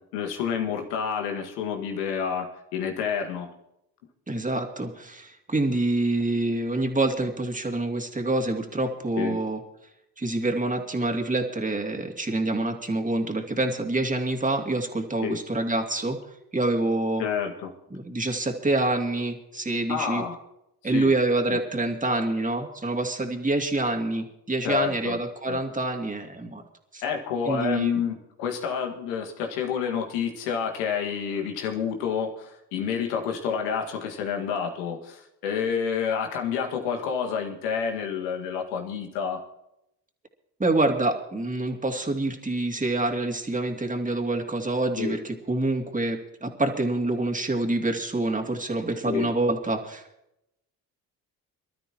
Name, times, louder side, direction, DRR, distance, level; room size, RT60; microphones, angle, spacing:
voice 1, 0.0-3.5 9.2-9.4 15.2-15.4 17.2-17.7 19.9-20.4 20.9-21.1 21.5-21.6 24.6-25.2 25.5-25.6 27.0-39.4 45.0-45.2 49.1-49.3, left 7 dB, 80° left, 3 dB, 2.0 m, -29 dB
voice 2, 4.3-9.6 10.2-16.2 16.5-17.2 17.9-20.2 20.8-26.6 26.9-27.0 27.4-28.0 40.6-50.0, right 2 dB, 15° right, 2 dB, 2.6 m, -26 dB
25.0 x 12.5 x 3.0 m, 0.84 s
hypercardioid pair, 50°, 48 cm